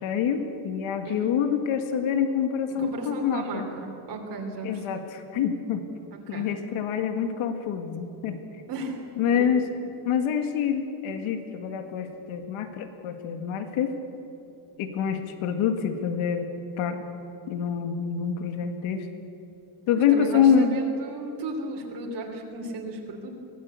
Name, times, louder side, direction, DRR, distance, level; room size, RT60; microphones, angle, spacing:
voice 1, 0.0-3.7 4.6-5.9 6.3-8.4 9.2-13.9 14.8-16.5 16.8-17.0 17.5-19.1 19.9-20.8, left 7 dB, 80° left, 7 dB, 2.0 m, -26 dB
voice 2, 2.7-5.0 6.1-6.5 8.7-9.0 9.3-9.4 20.1-23.4, right 3 dB, 55° right, 1 dB, 3.5 m, -35 dB
24.0 x 17.5 x 8.3 m, 2.8 s
cardioid pair, 160°, 48 cm